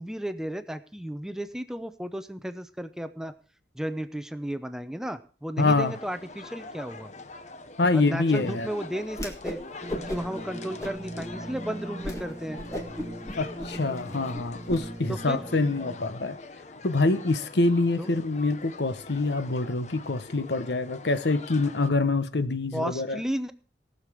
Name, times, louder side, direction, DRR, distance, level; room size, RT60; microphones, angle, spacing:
voice 1, 0.0-3.3 3.7-7.1 7.9-9.6 10.1-12.6 15.1-15.4 18.0-18.1 22.7-23.5, equal, 5° right, 0.5 m, -34 dB
voice 2, 5.6-5.9 7.8-8.7 13.3-16.4 16.8-23.2, left 3 dB, 80° left, 0.9 m, -25 dB
sound 1, 5.6-21.9, left 3 dB, 40° left, 0.8 m, -44 dB
Whoosh swoosh swish, 9.1-9.6 9.9-10.4 10.8-11.3 11.7-11.8 12.0-12.2 12.5-14.8, equal, 20° left, 1.6 m, -36 dB
sound 2, 9.8-16.0, right 1 dB, 30° right, 1.9 m, -40 dB
18.5 x 6.8 x 4.9 m
head